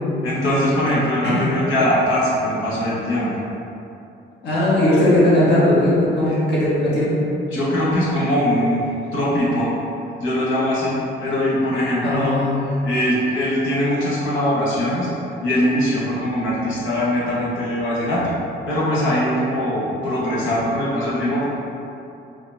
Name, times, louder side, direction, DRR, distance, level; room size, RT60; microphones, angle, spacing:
voice 1, 0.2-3.3 6.3-6.4 7.5-8.8 9.1-9.7 10.2-10.9 11.2-12.4 12.6-15.1 15.4-18.3 18.7-21.5, left 1 dB, 85° left, -6 dB, 1.2 m, -21 dB
voice 2, 4.4-7.1 12.0-12.6, left 1 dB, 55° left, -8 dB, 1.4 m, -18 dB
4.9 x 3.0 x 3.4 m, 2.8 s
cardioid pair, 90°, 20 cm